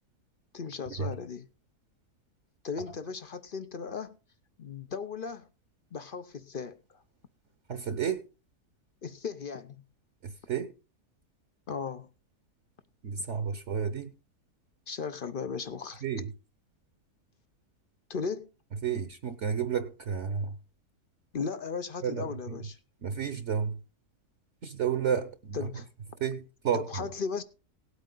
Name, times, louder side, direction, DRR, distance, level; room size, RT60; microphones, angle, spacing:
voice 1, 0.5-1.5 2.6-4.2 4.6-5.5 5.9-7.0 9.0-9.8 11.7-12.1 14.9-16.0 18.1-18.5 21.3-22.8 25.5-25.9 26.7-27.4, left 5 dB, 50° left, 0.7 m, -36 dB
voice 2, 7.7-8.2 10.2-10.7 13.0-14.1 16.0-16.3 18.8-20.5 22.0-22.6 23.0-23.8 24.6-25.6 26.2-27.1, right 7 dB, 55° right, 1.1 m, -31 dB
17.5 x 8.3 x 3.9 m
omnidirectional pair, 1.6 m